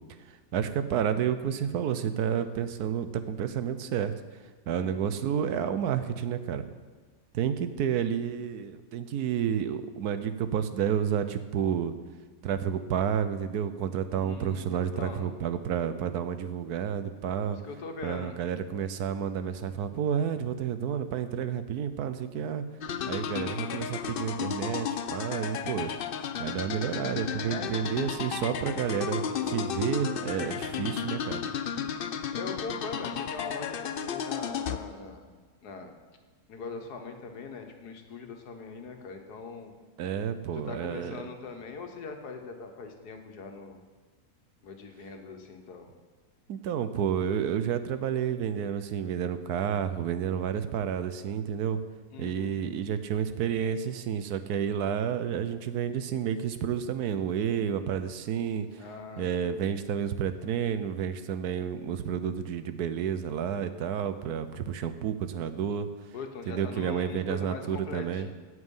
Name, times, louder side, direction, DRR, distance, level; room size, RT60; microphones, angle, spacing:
voice 1, 0.5-4.1 4.7-6.6 7.3-11.9 12.4-17.6 18.0-22.6 23.1-25.9 26.4-29.2 29.5-31.4 40.0-41.1 46.5-51.8 52.2-58.8 59.2-65.9 66.5-68.3, right 8 dB, 80° right, 11 dB, 1.3 m, -30 dB
voice 2, 4.8-5.2 14.1-15.3 17.5-18.4 27.5-27.7 29.2-29.8 32.3-35.3 35.6-36.0 36.5-39.7 40.5-43.8 44.6-45.9 52.1-52.6 58.7-59.8 66.1-68.3, left 4 dB, 85° left, 5 dB, 1.8 m, -41 dB
sound 1, 22.8-34.8, left 8 dB, 65° left, 0.5 m, -33 dB
16.5 x 6.4 x 5.5 m, 1.4 s
omnidirectional pair, 1.7 m